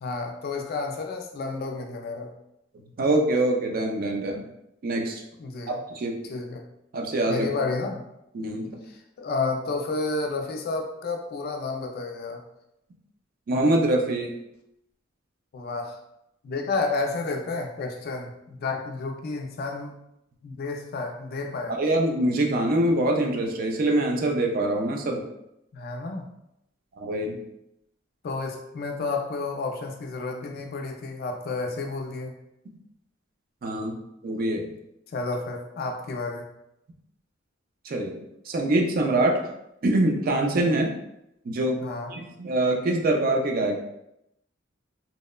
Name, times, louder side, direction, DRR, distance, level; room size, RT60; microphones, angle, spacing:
voice 1, 0.0-2.3 5.4-5.8 6.3-6.6 7.3-8.0 9.2-12.4 15.5-16.0 16.4-19.9 20.4-21.8 25.7-26.3 28.2-32.3 35.1-36.4 41.8-42.1, left 3 dB, 50° left, 3 dB, 0.3 m, -31 dB
voice 2, 3.0-4.5 4.8-5.2 5.7-6.1 6.9-7.5 8.3-8.8 13.5-14.3 21.8-25.2 27.0-27.4 33.6-34.0 34.2-34.7 37.8-38.2 38.5-39.5 39.8-40.9 41.4-41.8 42.1-43.8, right 1 dB, 45° right, 1 dB, 0.4 m, -24 dB
2.8 x 2.1 x 2.2 m, 0.83 s
head